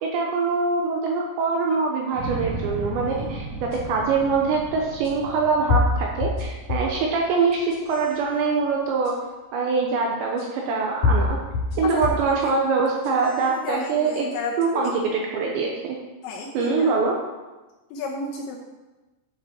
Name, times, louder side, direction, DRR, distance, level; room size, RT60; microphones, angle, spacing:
voice 1, 0.0-9.2 9.5-11.4 11.8-14.3 14.6-16.0 16.5-17.2, right 4 dB, 75° right, 0 dB, 2.7 m, -24 dB
sound 1, 2.1-8.2, right 3 dB, 55° right, 2.7 m, -35 dB
sound 2, 3.7-3.8 5.0-5.1 5.7-7.0 7.5-8.1 9.0-9.1 10.4-10.5 11.0-12.3 12.9-13.4, left 3 dB, 45° left, 4.3 m, -24 dB
voice 2, 11.8-12.5 13.4-14.9 16.2-16.9 17.9-18.6, left 3 dB, 75° left, -1 dB, 2.8 m, -32 dB
11.5 x 6.6 x 4.5 m, 1.1 s
omnidirectional pair, 6.0 m